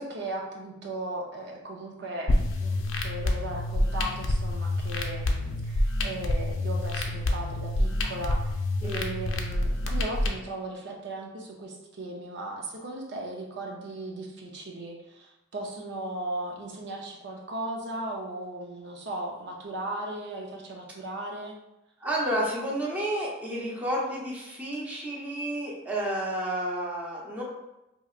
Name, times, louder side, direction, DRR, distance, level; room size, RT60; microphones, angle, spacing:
voice 1, 0.0-8.4 8.8-21.5, right 1 dB, 60° right, -1 dB, 0.6 m, -37 dB
sound 1, 2.3-10.3, left 1 dB, 85° left, 0.5 m, -27 dB
voice 2, 22.0-27.4, right 1 dB, 10° right, -5 dB, 0.7 m, -31 dB
4.6 x 2.9 x 2.4 m, 0.94 s
head